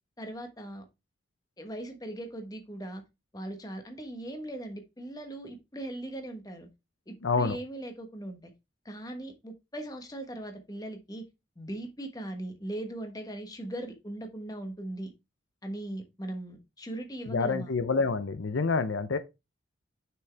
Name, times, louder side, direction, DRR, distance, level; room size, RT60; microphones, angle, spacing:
voice 1, 0.2-0.8 1.6-3.0 3.3-6.7 7.1-8.5 8.8-11.3 11.6-15.1 15.6-17.7, right 1 dB, 20° left, 1.2 m, -39 dB
voice 2, 7.2-7.6 17.3-19.2, left 4 dB, 80° left, 0.6 m, -27 dB
6.3 x 6.0 x 3.4 m
head